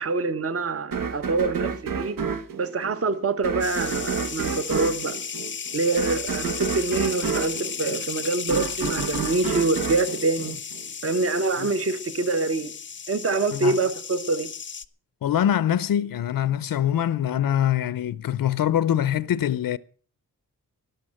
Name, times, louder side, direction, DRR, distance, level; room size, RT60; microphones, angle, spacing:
voice 1, 0.0-2.2 2.6-5.2 5.7-10.6 11.0-12.7 13.1-14.5, right 3 dB, 45° right, 1.1 m, -25 dB
sound 1, 0.9-11.1, right 6 dB, 75° right, 1.3 m, -30 dB
sound 2, 3.6-14.9, left 6 dB, 35° left, 0.6 m, -34 dB
voice 2, 15.2-19.8, left 10 dB, 80° left, 0.6 m, -24 dB
12.0 x 12.0 x 7.6 m
wide cardioid pair, 170°, 33 cm